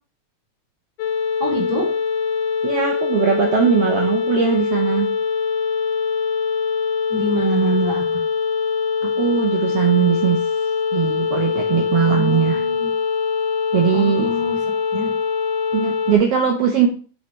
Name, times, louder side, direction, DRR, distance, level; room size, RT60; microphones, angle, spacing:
sound 1, 1.0-16.2, left 5 dB, 85° left, 2.3 m, -23 dB
voice 1, 1.4-1.9 7.1-8.2 12.1-12.9 13.9-14.6 14.9-15.1, right 1 dB, 30° right, -5 dB, 3.3 m, -25 dB
voice 2, 2.6-5.2 9.0-10.4 10.9-12.6 13.7-14.3 15.7-16.9, right 8 dB, 75° right, 2 dB, 1.4 m, -19 dB
7.8 x 5.5 x 3.1 m, 0.39 s
omnidirectional pair, 3.6 m